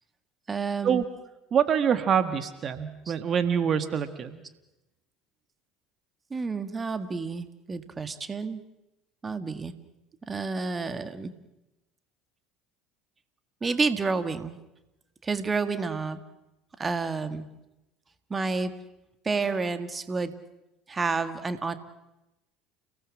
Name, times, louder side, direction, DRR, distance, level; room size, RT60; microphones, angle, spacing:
voice 1, 0.5-1.0 3.1-3.2 6.3-8.6 9.2-9.7 10.3-11.3 13.6-14.6 15.2-16.2 16.8-17.5 18.3-18.7 19.2-20.3 20.9-21.8, right 4 dB, 25° right, 10 dB, 1.8 m, -29 dB
voice 2, 1.5-4.4, right 8 dB, 40° right, 9 dB, 1.7 m, -25 dB
30.0 x 18.0 x 7.5 m, 0.94 s
hypercardioid pair, 65°, 0 cm